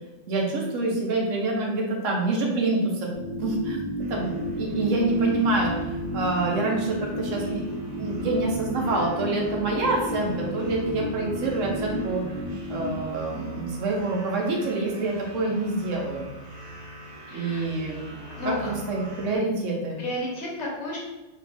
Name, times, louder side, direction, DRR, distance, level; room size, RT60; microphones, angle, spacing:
voice 1, 0.3-3.1 3.4-3.8 4.1-12.2 12.7-16.3 17.3-18.1 18.6-20.0, right 2 dB, 80° right, -1 dB, 1.1 m, -26 dB
sound 1, 3.1-13.1, equal, 25° left, 1.0 m, -32 dB
kings and desperate men, 4.0-19.4, equal, 65° right, 0.4 m, -43 dB
voice 2, 17.3-17.7 18.4-18.6 20.0-21.0, left 1 dB, 65° left, -4 dB, 1.2 m, -32 dB
2.8 x 2.6 x 3.3 m, 1.1 s
omnidirectional pair, 1.3 m